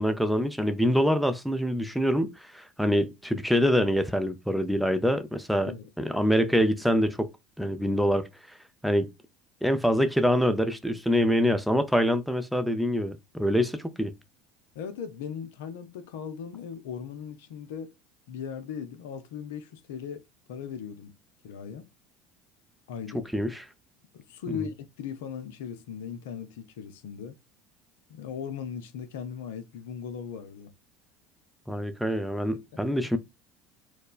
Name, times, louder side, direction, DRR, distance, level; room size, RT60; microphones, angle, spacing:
voice 1, 0.0-5.7 6.0-7.3 7.6-8.3 8.8-9.1 9.6-14.1 23.3-23.6 31.7-33.2, equal, ahead, 0.5 m, -25 dB
voice 2, 14.7-17.9 18.3-21.1 21.4-21.9 22.9-23.2 24.1-27.3 28.1-30.7 32.7-33.1, left 7 dB, 70° left, 0.4 m, -38 dB
4.2 x 2.1 x 2.4 m
hypercardioid pair, 70°, 0 cm